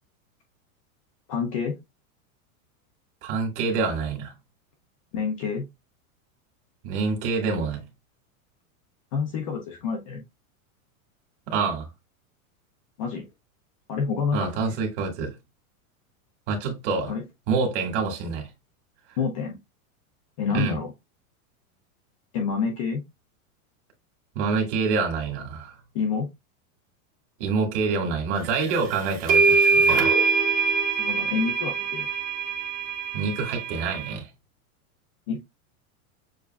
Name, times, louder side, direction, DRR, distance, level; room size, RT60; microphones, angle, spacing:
voice 1, 1.3-1.8 5.1-5.7 9.1-10.2 13.0-13.2 13.9-14.5 17.1-17.2 19.2-19.6 20.4-20.9 22.3-23.0 25.9-26.3 31.0-32.1 35.3-35.4, left 5 dB, 25° left, 0.3 m, -28 dB
voice 2, 3.2-4.3 6.8-7.8 11.5-11.9 14.3-15.3 16.5-17.1 17.5-18.5 20.5-20.8 24.4-25.7 27.4-30.1 33.1-34.3, right 4 dB, 50° right, 1.8 m, -26 dB
sound 1, 28.7-28.8 29.3-34.1, right 4 dB, 20° right, 0.7 m, -23 dB
6.9 x 2.4 x 2.2 m
supercardioid pair, 160°, 43 cm